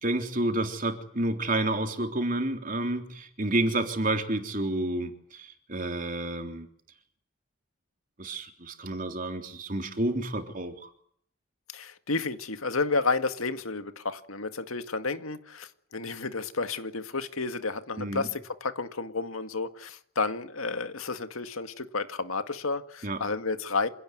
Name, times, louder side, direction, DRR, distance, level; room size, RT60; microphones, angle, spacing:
voice 1, 0.0-6.7 8.2-10.9 18.0-18.3 23.0-23.2, right 1 dB, 40° right, 3.5 m, -30 dB
voice 2, 11.7-23.9, left 3 dB, 85° left, 2.0 m, -31 dB
27.0 x 17.5 x 9.4 m
head